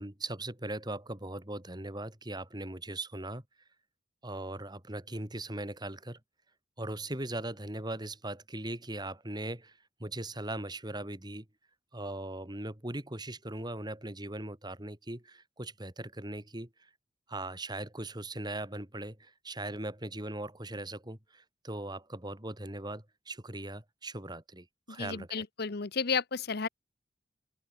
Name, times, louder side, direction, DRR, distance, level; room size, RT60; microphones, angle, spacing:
voice 1, 0.0-3.4 4.2-6.2 6.8-11.4 11.9-16.9 17.3-25.4, right 1 dB, 20° right, 3.3 m, -39 dB
voice 2, 25.0-26.7, left 5 dB, 55° left, 0.9 m, -32 dB
open air
head